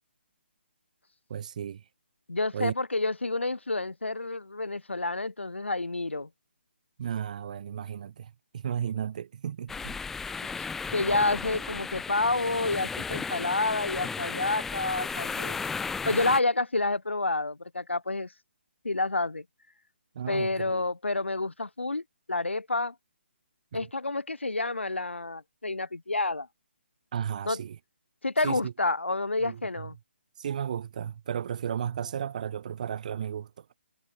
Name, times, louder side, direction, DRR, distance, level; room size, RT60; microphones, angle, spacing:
voice 1, 1.3-1.8 2.5-2.7 7.0-10.0 20.1-20.8 23.7-23.8 27.1-27.8 28.4-28.7 29.4-29.9 30.4-33.6, right 8 dB, 40° right, 1.0 m, -34 dB
voice 2, 2.3-6.3 10.4-10.6 10.9-15.6 16.1-18.3 18.8-19.4 20.3-22.0 22.3-22.9 23.7-26.5 27.5-27.6 28.2-30.0, left 2 dB, 80° left, 0.5 m, -29 dB
sound 1, 9.7-16.4, left 5 dB, 5° left, 0.5 m, -34 dB
figure-of-eight pair, 140°, 6 cm